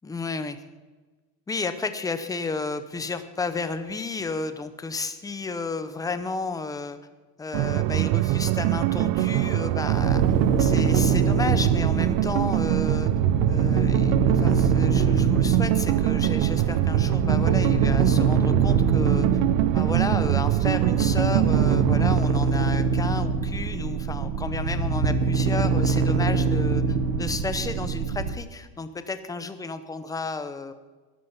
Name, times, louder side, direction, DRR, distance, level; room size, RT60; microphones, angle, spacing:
voice 1, 0.0-0.6 1.5-7.0 7.4-10.2 10.6-13.1 13.5-19.3 19.7-30.7, left 4 dB, 10° left, 10 dB, 0.7 m, -32 dB
sound 1, 7.5-22.2, right 16 dB, 70° right, 0.6 m, -23 dB
sound 2, 9.9-28.4, right 4 dB, 85° right, 1.4 m, -24 dB
13.5 x 11.0 x 5.9 m, 1.3 s
cardioid pair, 160°, 37 cm